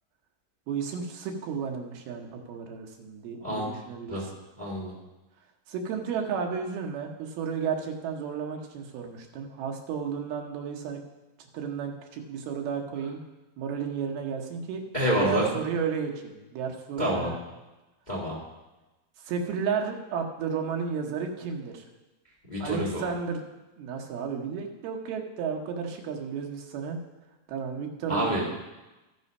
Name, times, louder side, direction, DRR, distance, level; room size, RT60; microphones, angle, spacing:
voice 1, 0.7-4.3 5.7-11.0 11.4-13.2 13.6-14.8 15.2-17.4 19.2-21.9 22.6-23.4 23.8-27.0 27.5-28.5, right 6 dB, 85° right, 2 dB, 3.0 m, -33 dB
voice 2, 4.6-4.9 14.9-15.5 17.0-17.3 18.1-18.4 22.5-23.1 28.1-28.5, equal, 20° left, -4 dB, 1.0 m, -27 dB
14.0 x 6.2 x 5.3 m, 1.1 s
omnidirectional pair, 4.3 m